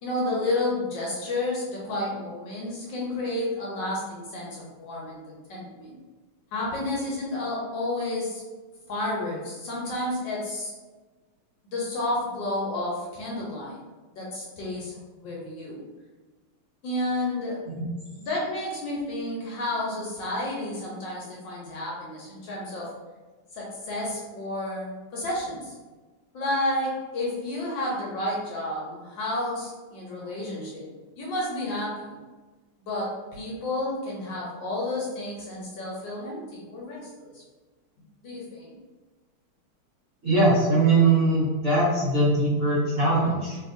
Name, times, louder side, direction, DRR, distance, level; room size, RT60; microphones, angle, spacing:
voice 1, 0.0-6.0 6.5-8.4 8.9-10.7 11.7-13.8 14.1-14.9 15.2-15.8 16.8-17.6 18.2-22.9 23.5-25.7 26.3-32.1 32.8-37.4 38.2-38.8, left 1 dB, 70° left, -4 dB, 1.3 m, -31 dB
voice 2, 40.2-43.6, right 2 dB, 50° right, -11 dB, 1.1 m, -21 dB
3.3 x 2.8 x 2.5 m, 1.3 s
omnidirectional pair, 2.3 m